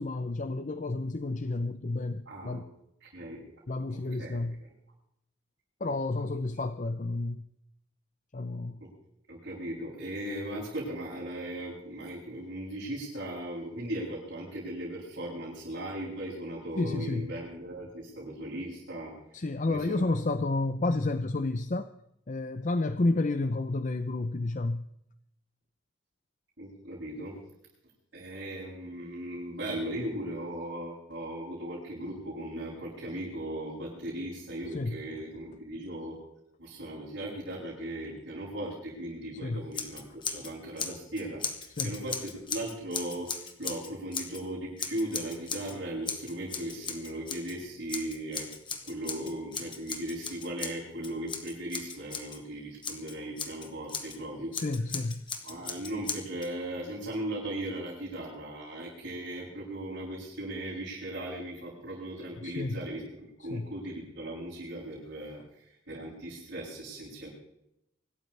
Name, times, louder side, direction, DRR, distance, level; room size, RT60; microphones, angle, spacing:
voice 1, 0.0-2.7 3.7-4.6 5.8-7.5 8.3-8.8 16.8-17.2 19.3-21.9 22.3-24.9 34.7-35.0 39.4-39.7 41.8-42.0 54.5-55.2 62.4-62.9 63.5-63.7, left 2 dB, 40° left, 11 dB, 0.6 m, -30 dB
voice 2, 2.3-2.6 3.0-3.4 3.9-4.7 6.5-6.6 8.8-8.9 9.3-20.2 26.6-27.4 28.1-36.2 36.6-48.5 48.9-54.5 55.4-63.1 63.4-67.3, right 1 dB, 65° right, -8 dB, 7.7 m, -38 dB
Scissors, 39.7-40.5 40.8-44.4 44.8-45.8 46.1-47.6 47.9-52.4 52.8-54.2 54.5-56.5, left 5 dB, 25° left, 1.6 m, -37 dB
24.5 x 13.5 x 3.3 m, 0.81 s
head